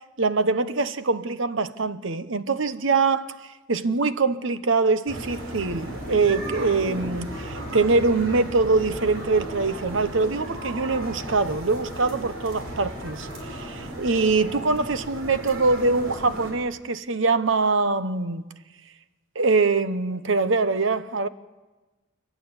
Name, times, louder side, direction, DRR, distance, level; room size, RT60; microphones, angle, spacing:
voice 1, 0.2-3.3 3.7-18.4 19.4-21.3, right 3 dB, 65° right, 0.9 m, -23 dB
sound 1, 5.1-16.5, right 1 dB, 85° right, 6.0 m, -35 dB
30.0 x 11.0 x 9.7 m
head